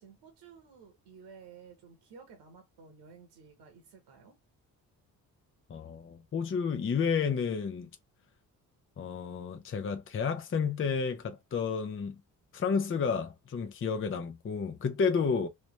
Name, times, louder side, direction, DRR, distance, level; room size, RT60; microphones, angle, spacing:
voice 1, 0.0-4.4, right 5 dB, 75° right, 1.2 m, -54 dB
voice 2, 5.7-7.9 9.0-12.1 12.5-15.5, left 6 dB, 30° left, 0.7 m, -31 dB
3.2 x 3.1 x 3.1 m
supercardioid pair, 55°, 41 cm